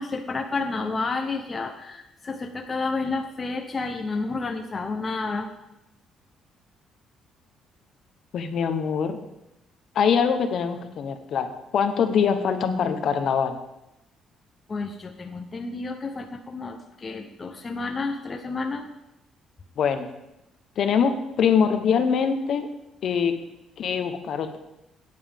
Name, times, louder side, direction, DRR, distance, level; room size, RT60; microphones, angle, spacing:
voice 1, 0.0-5.5 14.7-18.9, left 3 dB, 25° left, 4 dB, 0.7 m, -30 dB
voice 2, 8.3-9.2 9.9-11.5 11.7-13.6 19.8-20.1 20.8-22.7 23.0-23.4 23.8-24.6, left 7 dB, 50° left, 8 dB, 1.0 m, -23 dB
16.5 x 9.6 x 3.5 m, 0.90 s
cardioid pair, 155°, 0 cm